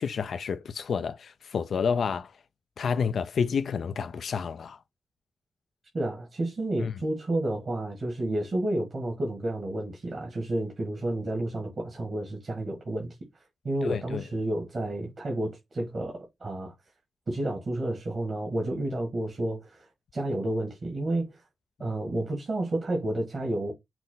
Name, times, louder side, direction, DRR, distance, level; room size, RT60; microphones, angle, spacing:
voice 1, 0.0-2.4 2.8-4.8 6.8-6.9 13.8-14.2, left 6 dB, 75° left, 0.3 m, -29 dB
voice 2, 5.9-13.2 13.6-16.7 17.3-19.9 20.1-21.4 21.8-23.7, right 1 dB, 55° right, 1.9 m, -30 dB
5.9 x 2.1 x 3.8 m
supercardioid pair, 45°, 0 cm